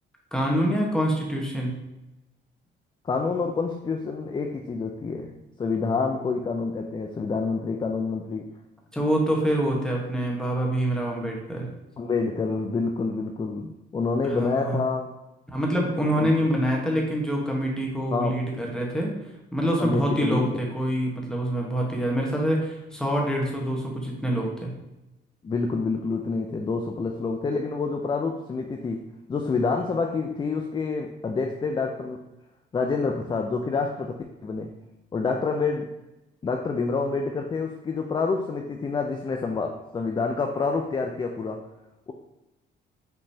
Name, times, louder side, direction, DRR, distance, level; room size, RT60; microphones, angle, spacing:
voice 1, 0.3-1.7 8.9-11.7 14.2-14.8 15.5-19.1 19.5-24.7, equal, 5° left, -1 dB, 1.1 m, -26 dB
voice 2, 3.0-8.5 12.0-15.1 16.2-16.3 18.1-18.4 19.8-20.5 25.4-29.0 29.3-32.2 32.7-34.7 35.1-35.9 36.4-41.6 42.1-42.2, left 4 dB, 25° left, 3 dB, 0.4 m, -27 dB
5.4 x 2.9 x 2.7 m, 0.96 s
cardioid pair, 90°, 20 cm